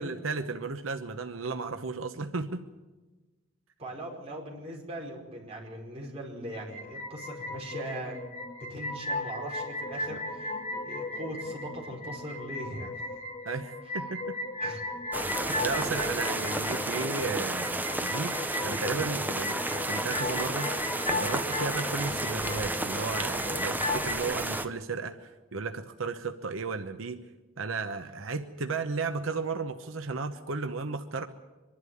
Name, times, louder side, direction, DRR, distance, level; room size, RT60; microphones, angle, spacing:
voice 1, 0.0-2.6 13.4-14.4 15.5-18.3 18.6-27.2 27.6-31.3, right 4 dB, 85° right, 7 dB, 0.9 m, -34 dB
voice 2, 3.8-8.4 8.7-13.2 13.9-14.2 14.6-14.8, right 1 dB, 30° right, -2 dB, 5.2 m, -40 dB
sound 1, 6.5-24.2, left 2 dB, 40° left, 2.3 m, -36 dB
sound 2, 15.1-24.7, right 2 dB, 10° right, 0.9 m, -32 dB
25.0 x 11.5 x 9.4 m, 1.2 s
head